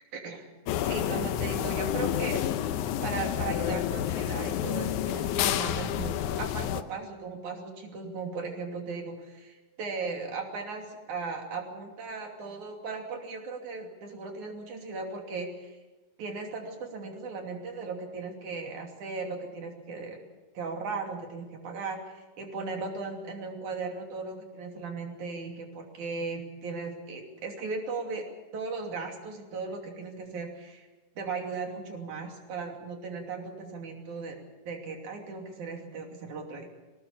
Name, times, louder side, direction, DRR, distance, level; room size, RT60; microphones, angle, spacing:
voice 1, 0.1-0.5 0.8-2.4 3.0-15.8 16.2-20.2 20.5-28.3 28.5-30.9 31.2-34.4 34.7-36.7, right 4 dB, 60° right, 2 dB, 4.1 m, -37 dB
sound 1, 0.7-6.8, left 11 dB, 75° left, 2.1 m, -29 dB
22.5 x 18.0 x 7.1 m, 1.2 s
omnidirectional pair, 3.9 m